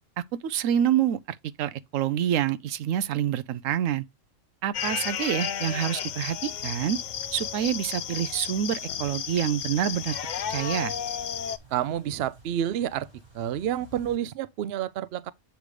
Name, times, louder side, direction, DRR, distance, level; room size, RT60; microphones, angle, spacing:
voice 1, 0.4-4.0 4.6-7.0 7.3-10.2 10.5-10.9, right 10 dB, 85° right, 1.0 m, -27 dB
sound 1, 4.7-11.6, left 8 dB, 65° left, 0.4 m, -33 dB
sound 2, 6.6-14.2, right 1 dB, 20° right, 1.3 m, -53 dB
voice 2, 11.7-13.1 13.3-15.3, right 10 dB, 60° right, 0.8 m, -29 dB
8.2 x 3.4 x 4.8 m
omnidirectional pair, 1.3 m